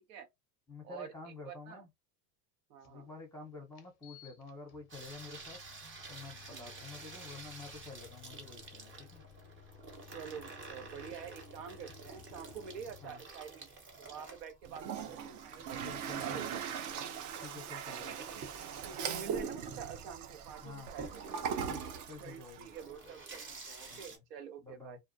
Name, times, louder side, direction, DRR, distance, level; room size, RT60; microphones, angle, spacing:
voice 1, 0.7-1.9 2.8-5.6 6.1-9.2 13.0-13.2 15.8-16.6 17.4-18.5 19.7-19.8 20.6-20.9 21.7-21.8 22.1-22.8 23.9-24.2 24.6-25.0, left 4 dB, 5° left, 0.9 m, -49 dB
voice 2, 1.4-1.8 2.7-3.1 6.5-6.7 10.1-13.7 14.0-16.6 18.9-21.2 22.2-25.0, right 7 dB, 75° right, 0.9 m, -47 dB
sound 1, 2.8-2.9 3.7-13.1, left 13 dB, 35° left, 0.5 m, -57 dB
Water tap faucet / Sink (filling or washing), 4.9-24.2, right 3 dB, 25° right, 0.8 m, -51 dB
Toilet flush, 14.6-22.8, right 7 dB, 40° right, 0.4 m, -40 dB
2.4 x 2.1 x 2.6 m
supercardioid pair, 105°, 50 cm